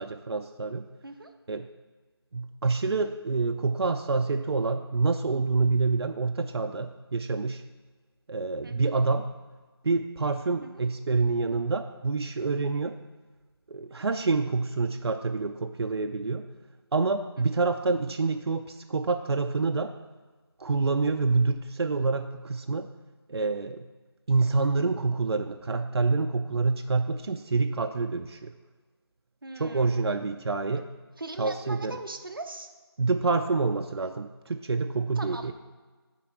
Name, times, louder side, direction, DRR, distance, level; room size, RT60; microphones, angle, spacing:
voice 1, 0.0-0.9 1.5-1.7 2.3-7.6 8.3-9.4 9.8-13.0 13.7-16.5 16.9-20.0 20.6-22.9 23.3-23.9 24.3-28.5 29.6-30.9 31.4-32.0 33.0-35.5, right 3 dB, 75° right, 6 dB, 0.4 m, -27 dB
voice 2, 29.4-30.2 31.2-32.7 35.2-35.5, right 2 dB, 55° right, 5 dB, 0.8 m, -40 dB
9.8 x 3.5 x 5.4 m, 1.3 s
figure-of-eight pair, 180°, 14 cm